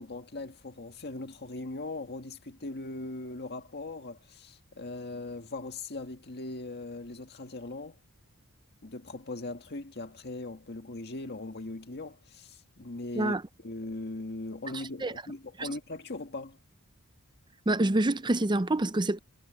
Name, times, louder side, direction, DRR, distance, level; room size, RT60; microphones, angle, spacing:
voice 1, 0.0-8.0 8.8-13.4 13.6-16.6, left 2 dB, 50° left, 1.8 m, -39 dB
voice 2, 17.7-19.2, right 2 dB, 20° right, 0.6 m, -26 dB
head